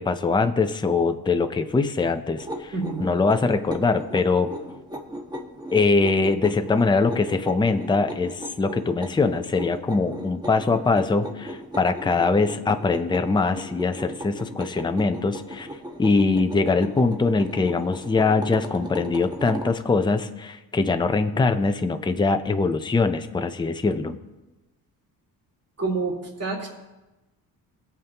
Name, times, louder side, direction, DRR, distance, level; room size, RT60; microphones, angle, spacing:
voice 1, 0.0-2.7 3.0-4.5 5.7-15.7 16.0-24.2, left 3 dB, 10° left, 7 dB, 0.6 m, -22 dB
sound 1, 2.4-19.8, equal, 10° right, 1.2 m, -37 dB
voice 2, 2.7-3.1 25.8-26.7, right 3 dB, 40° right, -3 dB, 3.5 m, -28 dB
21.0 x 7.4 x 2.9 m, 1.1 s
cardioid pair, 110°, 39 cm